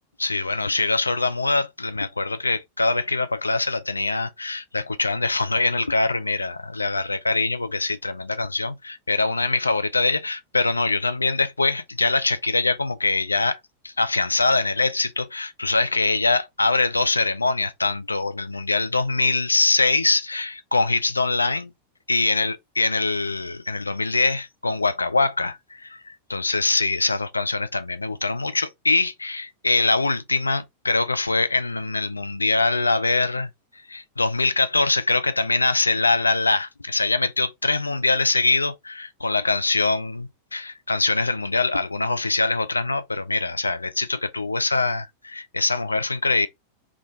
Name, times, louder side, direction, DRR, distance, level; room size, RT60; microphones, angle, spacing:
voice 1, 0.2-13.6 13.8-21.7 22.1-33.5 33.9-46.5, left 3 dB, 80° left, 0.4 m, -23 dB
3.6 x 2.4 x 3.8 m
figure-of-eight pair, 90°, 0 cm